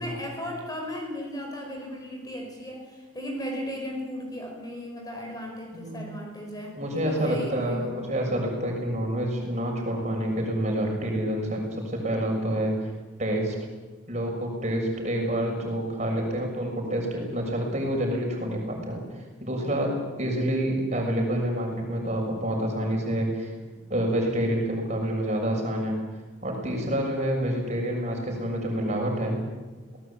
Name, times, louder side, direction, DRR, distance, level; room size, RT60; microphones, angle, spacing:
voice 1, 0.0-8.1, equal, 20° left, 1 dB, 5.2 m, -36 dB
voice 2, 5.7-6.0 6.7-12.7 13.2-13.5 14.1-19.0 19.4-19.9 20.2-23.5 23.9-26.0 26.4-29.4, right 1 dB, 35° right, 1 dB, 6.7 m, -28 dB
27.5 x 19.0 x 8.8 m, 1.3 s
head